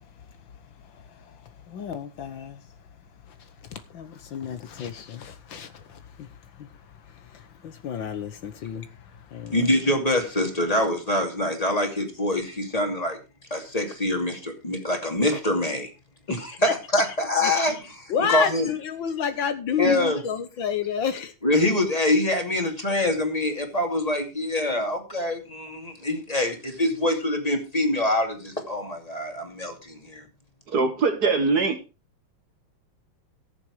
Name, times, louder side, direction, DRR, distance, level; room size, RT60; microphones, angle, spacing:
voice 1, 0.9-1.3 1.7-2.6 3.7-6.3 6.6-6.7 7.2-8.9 9.2-9.6 16.6-16.7 17.4-17.5 18.1-21.3, left 7 dB, 70° left, 1.8 m, -30 dB
voice 2, 9.5-13.2 13.5-15.9 16.3-18.7 19.8-20.2 21.4-30.2, left 1 dB, 20° left, 2.6 m, -25 dB
voice 3, 30.7-31.8, right 4 dB, 50° right, 1.8 m, -22 dB
14.0 x 7.4 x 4.8 m
omnidirectional pair, 2.2 m